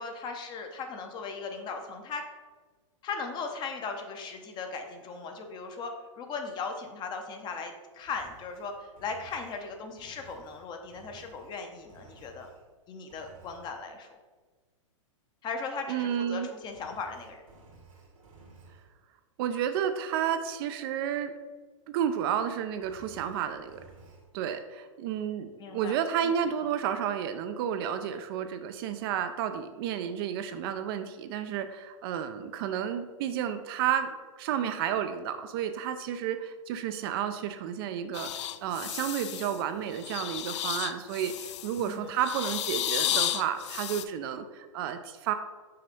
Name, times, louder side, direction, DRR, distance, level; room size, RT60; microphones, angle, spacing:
voice 1, 0.0-2.2 3.0-12.5 12.9-14.2 15.4-17.4 25.6-26.0 26.2-26.3 41.8-42.1, left 4 dB, 25° left, 4 dB, 0.8 m, -38 dB
Engine, 8.0-12.7 13.1-13.8 16.6-18.9 22.7-24.3, right 3 dB, 85° right, 1.8 m, -55 dB
voice 2, 15.9-16.5 19.4-21.3 21.9-23.8 24.3-34.1 34.4-38.3 38.6-45.3, right 9 dB, 45° right, 9 dB, 0.5 m, -31 dB
sound 1, 38.1-39.6 40.0-41.8 42.2-44.0, left 12 dB, 60° left, 0.4 m, -32 dB
5.6 x 3.2 x 5.2 m, 1.4 s
hypercardioid pair, 125°, 17 cm